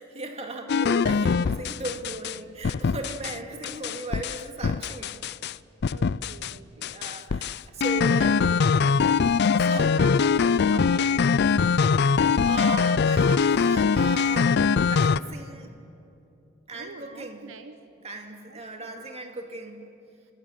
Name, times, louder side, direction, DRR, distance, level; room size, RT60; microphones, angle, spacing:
voice 1, 0.0-5.2 6.8-8.5 9.6-10.1 12.5-14.6 14.8-15.7 16.7-17.5 18.0-19.9, right 2 dB, 35° right, 3 dB, 2.4 m, -37 dB
sound 1, 0.7-2.4 2.6-3.3 3.6-5.5 5.8-6.5 6.8-15.2, left 5 dB, 60° left, 0.4 m, -22 dB
voice 2, 5.9-7.1 9.6-11.2 16.7-17.8 18.5-18.9, right 3 dB, 75° right, 8 dB, 1.0 m, -43 dB
26.5 x 19.5 x 7.7 m, 2.8 s
head